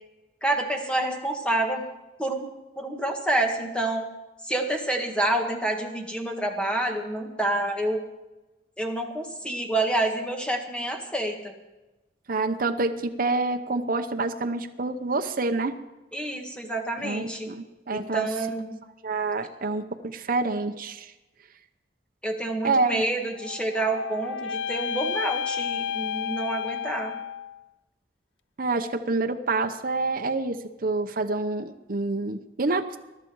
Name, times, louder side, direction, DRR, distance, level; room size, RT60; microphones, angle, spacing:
voice 1, 0.4-1.8 2.2-2.5 2.8-4.0 4.4-8.0 8.8-11.5 16.1-17.5 17.9-18.8 22.2-27.1, right 1 dB, 5° left, 3 dB, 1.8 m, -28 dB
voice 2, 12.3-15.8 17.0-18.3 19.0-21.1 22.6-23.0 28.6-33.0, right 3 dB, 50° right, 5 dB, 0.8 m, -27 dB
sound 1, 23.3-27.6, left 7 dB, 85° left, 0.4 m, -31 dB
21.5 x 12.0 x 4.7 m, 1.1 s
head